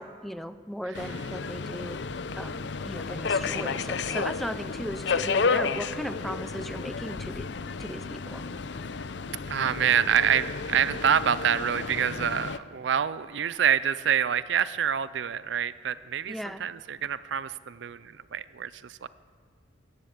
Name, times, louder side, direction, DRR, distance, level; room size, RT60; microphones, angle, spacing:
voice 1, 0.0-2.0 2.3-7.5 7.8-8.4 16.3-16.6, equal, ahead, 12 dB, 0.5 m, -37 dB
Subway metro underground, 0.9-12.6, left 4 dB, 65° left, 0.6 m, -32 dB
voice 2, 3.3-3.6 9.5-19.1, right 8 dB, 70° right, 17 dB, 0.5 m, -27 dB
15.5 x 11.0 x 8.1 m, 2.3 s
head